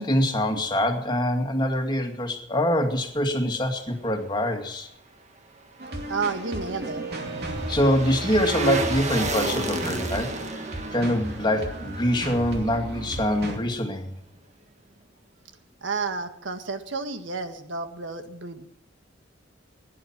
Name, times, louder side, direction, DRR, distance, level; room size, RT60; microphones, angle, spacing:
voice 1, 0.0-4.9 7.7-10.6 10.9-14.2, equal, 25° left, 3 dB, 2.3 m, -24 dB
sound 1, 5.8-13.6, right 1 dB, 60° right, 2.6 m, -35 dB
sound 2, 5.9-13.1 13.4-13.5, right 2 dB, 40° right, 1.7 m, -33 dB
voice 2, 6.1-7.0 15.8-18.7, right 4 dB, 80° right, 7 dB, 1.7 m, -31 dB
17.0 x 10.5 x 7.3 m, 0.76 s
head